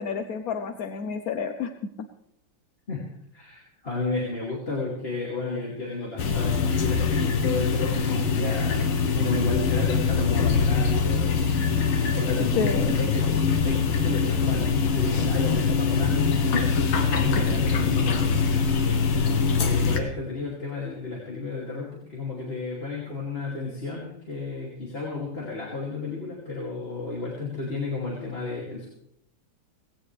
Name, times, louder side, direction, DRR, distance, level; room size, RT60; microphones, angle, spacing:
voice 1, 0.0-1.7 12.6-13.0, left 6 dB, 60° left, 7 dB, 1.0 m, -29 dB
voice 2, 3.3-8.9 9.1-11.9 12.1-28.9, left 3 dB, 30° left, -4 dB, 2.8 m, -33 dB
sound 1, 6.2-20.0, left 5 dB, 85° left, 2.1 m, -23 dB
18.5 x 16.5 x 3.3 m, 0.74 s
omnidirectional pair, 2.2 m